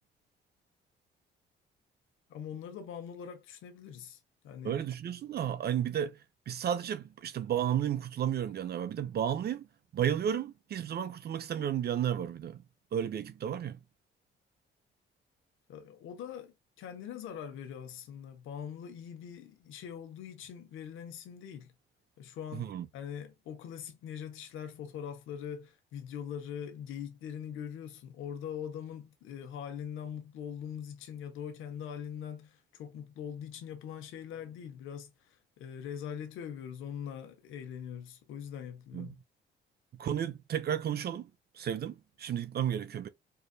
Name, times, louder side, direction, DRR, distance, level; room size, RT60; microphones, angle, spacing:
voice 1, 2.3-4.8 15.7-21.7 22.2-39.2, left 8 dB, 85° left, 1.0 m, -42 dB
voice 2, 4.6-6.2 6.5-9.7 9.9-12.6 12.9-13.8 22.5-22.9 38.9-39.1 40.0-41.3 41.6-43.1, right 9 dB, 55° right, 0.6 m, -32 dB
4.8 x 2.6 x 2.3 m
cardioid pair, 90°, 20 cm